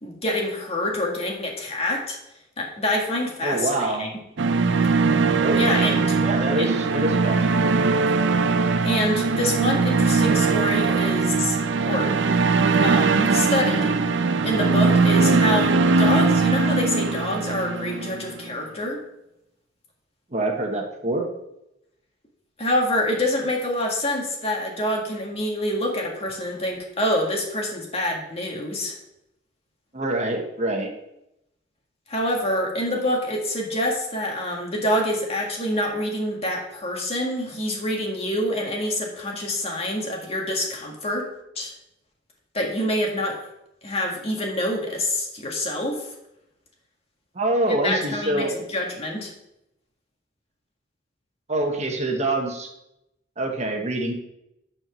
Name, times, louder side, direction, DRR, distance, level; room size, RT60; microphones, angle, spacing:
voice 1, 0.0-2.2 2.6-4.1 5.5-6.2 6.6-6.7 8.8-12.2 12.8-13.9 14.4-19.0 22.6-29.0 32.1-41.3 41.6-41.7 42.5-43.4 43.8-46.1 47.8-49.3, left 1 dB, 35° left, 0 dB, 1.9 m, -26 dB
voice 2, 3.4-4.1 5.4-7.8 20.3-21.3 29.9-30.9 47.3-48.5 51.5-52.7 53.4-54.1, right 2 dB, 40° right, 2 dB, 1.2 m, -26 dB
sound 1, 4.4-18.5, right 4 dB, 70° right, 0.5 m, -20 dB
8.8 x 4.6 x 6.2 m, 0.84 s
head